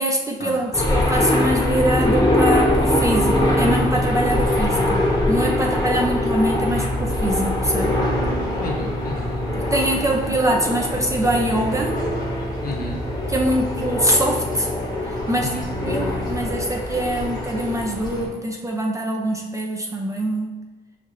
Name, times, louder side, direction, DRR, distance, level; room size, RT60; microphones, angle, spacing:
voice 1, 0.0-8.0 9.5-12.0 13.3-14.7 15.0-20.6, right 1 dB, 15° right, 0 dB, 0.5 m, -23 dB
sound 1, 0.7-18.3, left 1 dB, 20° left, 1.0 m, -23 dB
voice 2, 5.6-6.0 8.6-9.3 10.2-10.3 12.6-13.0 15.4-15.7, left 1 dB, 50° left, 0 dB, 1.0 m, -32 dB
5.2 x 3.2 x 2.6 m, 1.2 s
cardioid pair, 90°, 20 cm